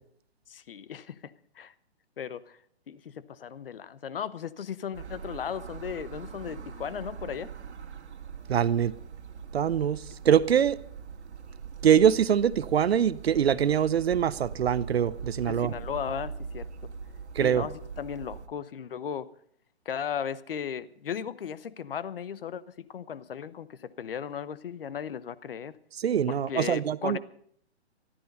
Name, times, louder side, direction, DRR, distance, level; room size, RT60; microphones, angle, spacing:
voice 1, 0.5-1.7 2.2-2.6 2.9-7.5 15.5-16.7 17.4-19.3 19.8-25.8 26.3-27.2, left 8 dB, 55° left, 1.0 m, -36 dB
sound 1, 4.9-18.5, right 6 dB, 85° right, 2.0 m, -42 dB
voice 2, 8.5-8.9 9.5-10.8 11.8-15.7 17.3-17.7 26.0-27.2, right 9 dB, 65° right, 0.9 m, -24 dB
15.0 x 13.5 x 5.4 m
hypercardioid pair, 180°, 33 cm